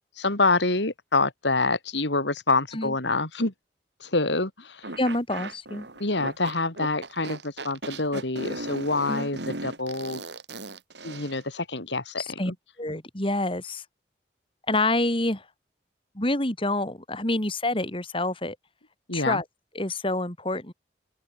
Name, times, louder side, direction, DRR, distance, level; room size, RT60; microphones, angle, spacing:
voice 1, 0.2-3.5 4.0-4.9 6.0-10.2 11.0-12.5 19.1-19.4, left 3 dB, 85° left, 3.7 m, -26 dB
sound 1, 4.8-11.4, right 2 dB, 80° right, 6.0 m, -37 dB
voice 2, 5.0-5.9 9.1-9.3 12.2-12.5 12.8-13.8 14.7-15.5 16.1-18.6 19.1-19.4 19.7-20.7, left 2 dB, 30° left, 4.0 m, -27 dB
open air
head